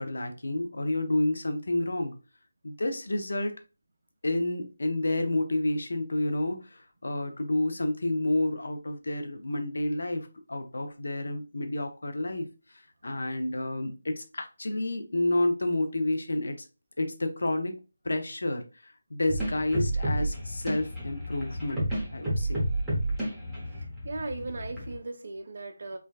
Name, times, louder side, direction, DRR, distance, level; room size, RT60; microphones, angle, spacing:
voice 1, 0.0-2.2 2.6-3.5 4.2-16.6 17.0-17.8 18.0-22.7, left 1 dB, 70° left, 0.5 m, -30 dB
sound 1, 19.3-24.9, right 1 dB, 10° right, 0.9 m, -31 dB
voice 2, 24.0-26.0, right 3 dB, 55° right, 0.5 m, -37 dB
3.3 x 2.2 x 2.3 m
figure-of-eight pair, 160°, 0 cm